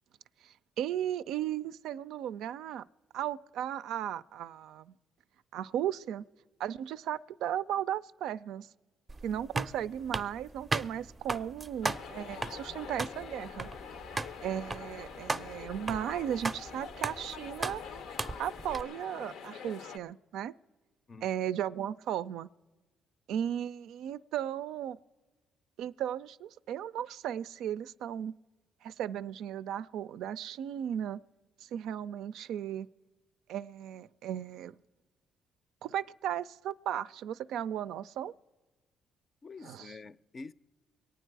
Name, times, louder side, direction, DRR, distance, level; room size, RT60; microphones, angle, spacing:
voice 1, 0.4-2.9 3.1-4.9 5.5-6.2 6.6-8.7 9.2-13.7 14.4-17.8 18.4-20.5 21.2-22.5 23.3-25.0 25.8-28.3 28.8-31.2 31.6-32.9 33.5-34.7 35.8-38.3 39.7-39.9, right 10 dB, 80° right, 0.3 m, -36 dB
sound 1, 9.1-18.8, right 3 dB, 25° right, 0.5 m, -37 dB
sound 2, 11.8-20.0, left 7 dB, 80° left, 0.6 m, -45 dB
voice 2, 39.4-40.5, left 3 dB, 40° left, 0.4 m, -47 dB
23.5 x 9.0 x 4.6 m
cardioid pair, 85°, 0 cm